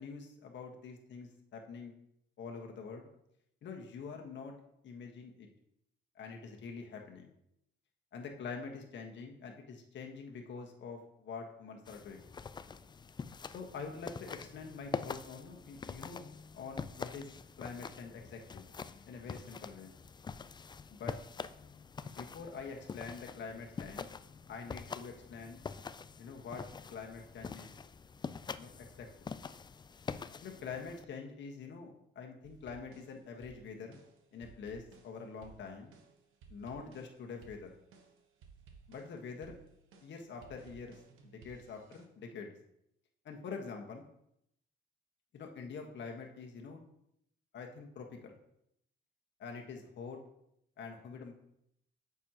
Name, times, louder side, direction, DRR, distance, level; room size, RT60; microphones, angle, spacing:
voice 1, 0.0-1.9 2.4-3.1 3.6-4.5 4.8-5.5 6.1-7.3 8.1-12.3 13.5-16.2 16.5-18.7 19.1-19.9 20.9-21.1 22.2-24.1 24.5-25.6 26.2-26.6 26.9-27.7 28.5-29.1 30.4-34.0 34.3-35.9 36.5-37.7 38.9-39.6 40.0-42.5 43.2-44.0 45.3-46.8 47.5-48.4 49.4-50.2 50.8-51.3, left 5 dB, 65° left, 2 dB, 1.5 m, -45 dB
sound 1, 11.9-31.1, left 5 dB, 20° left, 0.3 m, -45 dB
sound 2, 32.4-42.1, right 5 dB, 90° right, 1.2 m, -59 dB
8.7 x 7.3 x 3.0 m, 0.77 s
cardioid pair, 90°, 20 cm